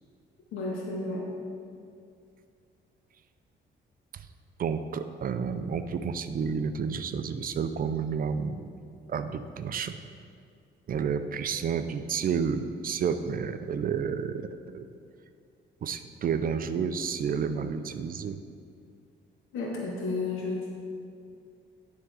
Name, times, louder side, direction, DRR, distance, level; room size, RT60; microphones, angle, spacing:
voice 1, 0.5-1.3 19.5-20.7, left 3 dB, 90° left, -3 dB, 1.7 m, -32 dB
voice 2, 4.6-8.7 9.1-10.0 10.9-14.5 14.7-14.9 15.8-18.4, right 6 dB, 45° right, 10 dB, 0.4 m, -30 dB
10.5 x 3.7 x 4.8 m, 2.4 s
cardioid pair, 90°, 20 cm